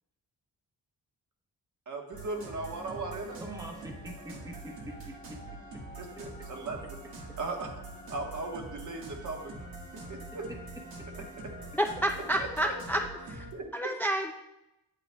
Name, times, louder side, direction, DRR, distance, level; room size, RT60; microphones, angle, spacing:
voice 1, 1.9-3.4 6.0-7.0 7.4-7.7 8.1-9.5 10.1-10.5 12.3-12.7 13.5-13.9, right 3 dB, 55° right, 1 dB, 1.3 m, -37 dB
sound 1, 2.1-13.5, right 2 dB, 80° right, 1.6 m, -44 dB
voice 2, 3.4-5.4 11.2-11.3, equal, 10° right, 1 dB, 0.9 m, -44 dB
voice 3, 11.8-13.0 13.7-14.3, right 1 dB, 5° left, 3 dB, 0.3 m, -29 dB
8.7 x 8.7 x 2.2 m, 0.92 s
wide cardioid pair, 145°, 36 cm